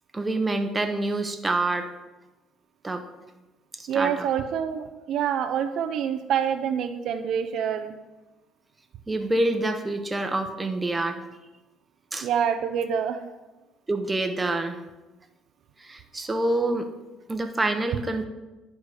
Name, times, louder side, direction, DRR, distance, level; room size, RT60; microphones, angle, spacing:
voice 1, 0.1-1.9 2.8-3.0 3.8-4.3 9.1-11.2 12.1-12.3 13.9-14.8 15.8-16.9 17.3-18.2, right 2 dB, 15° right, 5 dB, 0.9 m, -27 dB
voice 2, 3.9-7.9 12.2-13.2, right 8 dB, 65° right, 9 dB, 0.5 m, -26 dB
10.5 x 4.8 x 4.9 m, 1.1 s
cardioid pair, 95°, 0 cm